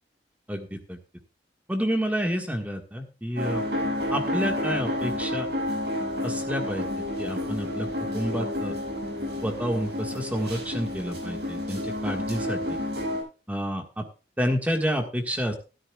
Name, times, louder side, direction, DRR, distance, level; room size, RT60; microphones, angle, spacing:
voice 1, 0.5-1.0 1.7-3.7 4.1-5.5 6.2-6.8 7.2-7.9 8.1-8.7 9.4-12.8 13.5-14.0 14.4-15.5, equal, 10° right, 4 dB, 1.5 m, -29 dB
sound 1, 3.4-13.2, left 1 dB, 65° right, 6.7 m, -30 dB
14.0 x 13.0 x 2.3 m, 0.32 s
head